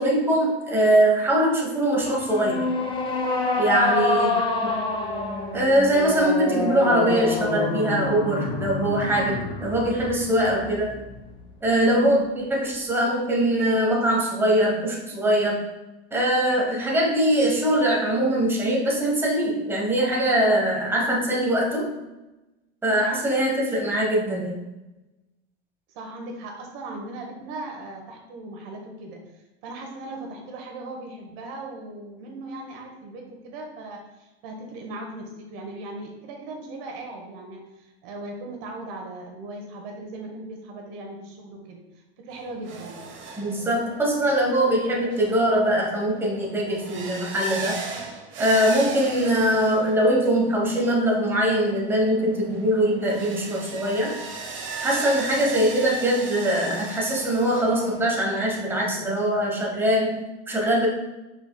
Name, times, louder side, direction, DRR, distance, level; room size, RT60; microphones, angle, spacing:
voice 1, 0.0-2.7 3.6-4.3 4.6-4.8 5.5-10.9 11.6-15.6 16.1-21.9 22.8-24.6 43.4-47.8 48.4-54.2 54.8-60.9, right 1 dB, 5° right, -3 dB, 1.0 m, -22 dB
sound 1, 2.0-11.4, left 3 dB, 15° left, 0.7 m, -27 dB
voice 2, 4.1-5.2 11.9-12.2 25.9-41.8 42.2-43.0, right 2 dB, 60° right, 1 dB, 1.2 m, -38 dB
sound 2, 42.3-59.0, right 4 dB, 35° right, 0.9 m, -38 dB
5.2 x 4.6 x 2.2 m, 1.0 s
hypercardioid pair, 105°, 33 cm